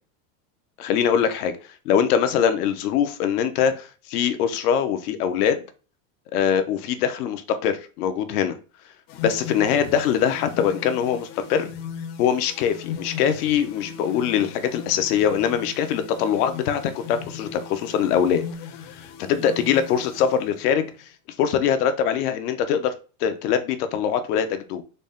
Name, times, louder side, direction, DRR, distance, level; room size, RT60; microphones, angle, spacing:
voice 1, 0.8-1.6 1.8-5.6 6.3-8.6 9.2-11.7 12.2-18.4 18.9-20.9 21.4-22.9 23.2-24.8, left 8 dB, 85° left, 0.7 m, -23 dB
sound 1, 9.1-21.0, left 7 dB, 50° left, 0.6 m, -38 dB
4.0 x 2.0 x 3.5 m
supercardioid pair, 150°, 45 cm